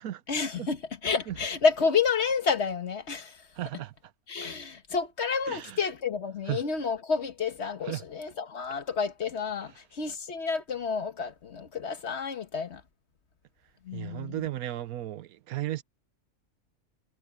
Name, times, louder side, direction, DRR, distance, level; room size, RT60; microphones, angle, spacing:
voice 1, 0.3-3.4 4.3-12.8 13.8-14.5, left 5 dB, 50° left, 1.5 m, -30 dB
voice 2, 3.6-3.9 5.5-5.8 6.5-6.6 7.8-8.0 13.9-15.8, right 14 dB, 85° right, 1.2 m, -34 dB
omnidirectional pair, 1.5 m